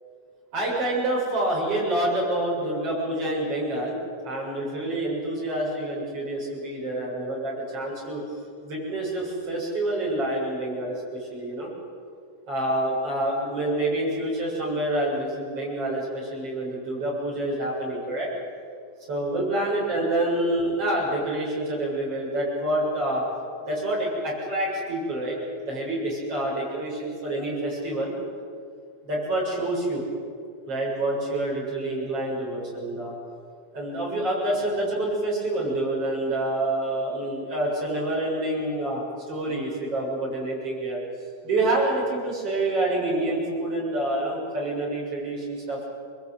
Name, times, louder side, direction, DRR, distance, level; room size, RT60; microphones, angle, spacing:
voice 1, 0.5-4.0 4.2-8.2 8.6-11.7 12.5-18.3 19.1-23.2 23.7-25.4 25.6-28.1 29.0-30.0 30.7-33.1 33.7-39.0 39.3-41.0 41.4-45.8, right 1 dB, 30° right, -4 dB, 8.1 m, -27 dB
25.0 x 21.5 x 9.0 m, 2.3 s
omnidirectional pair, 5.2 m